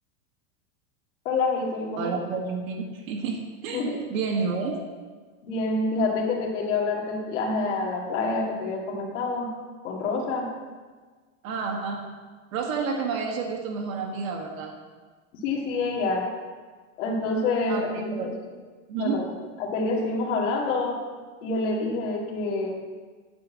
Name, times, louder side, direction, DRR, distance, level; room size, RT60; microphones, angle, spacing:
voice 1, 1.2-2.1 3.7-4.0 5.4-9.5 9.8-10.5 15.4-16.3 17.0-18.3 19.0-19.3 19.6-21.0 21.4-22.7, left 3 dB, 60° left, -2 dB, 2.2 m, -27 dB
voice 2, 2.0-4.8 11.4-12.1 12.5-14.8 17.7-18.2 18.9-19.2, right 5 dB, 85° right, 0 dB, 1.7 m, -30 dB
9.5 x 5.1 x 7.3 m, 1.4 s
supercardioid pair, 175°, 40 cm